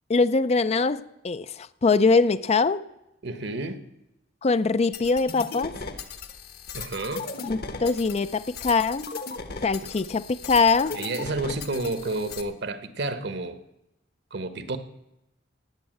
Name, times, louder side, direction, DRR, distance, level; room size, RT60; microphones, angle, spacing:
voice 1, 0.1-2.9 4.4-5.8 7.4-9.1 9.6-11.0, left 4 dB, 35° left, 0.4 m, -23 dB
voice 2, 3.2-3.8 6.7-7.3 9.8-9.9 10.9-13.6 14.3-14.8, right 2 dB, 60° right, 1.2 m, -30 dB
sound 1, 4.9-12.4, left 4 dB, 55° left, 1.2 m, -37 dB
17.0 x 8.1 x 7.8 m
head